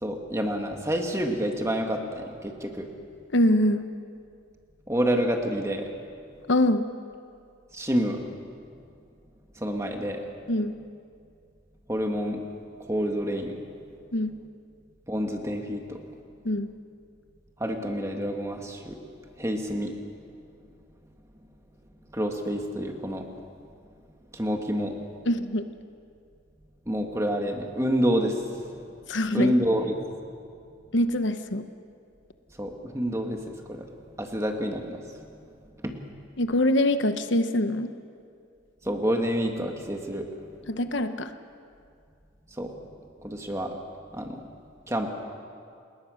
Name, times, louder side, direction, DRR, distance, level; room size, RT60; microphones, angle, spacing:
voice 1, 0.0-2.9 4.9-5.9 7.7-8.2 9.6-10.2 11.9-12.4 12.8-13.6 15.1-16.0 17.6-19.0 19.4-20.0 22.1-23.3 24.3-25.0 26.9-28.4 29.3-30.0 32.6-33.9 34.2-35.0 35.8-35.9 38.8-40.3 42.6-42.7 43.2-43.8 44.1-44.4 44.9-45.1, equal, 15° right, 3 dB, 1.9 m, -28 dB
voice 2, 3.3-3.8 6.5-6.9 10.5-10.7 14.1-14.3 16.4-16.7 25.3-25.7 29.1-29.5 30.9-31.6 36.4-37.9 40.7-41.3, left 1 dB, 65° left, 9 dB, 1.0 m, -24 dB
28.5 x 20.5 x 6.5 m, 2.4 s
head